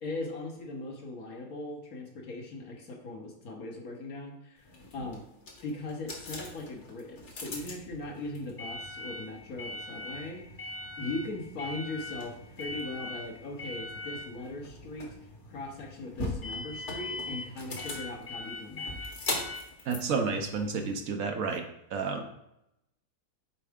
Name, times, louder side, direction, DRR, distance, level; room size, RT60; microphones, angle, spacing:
voice 1, 0.0-4.6 4.9-5.3 5.6-10.4 11.0-15.1 15.5-19.0, left 2 dB, 65° left, 1 dB, 1.6 m, -39 dB
sound 1, 4.6-21.1, left 2 dB, 50° left, 1.4 m, -40 dB
voice 2, 19.9-21.6 21.9-22.3, right 5 dB, 65° right, 4 dB, 1.1 m, -30 dB
7.4 x 4.6 x 3.6 m, 0.83 s
omnidirectional pair, 1.6 m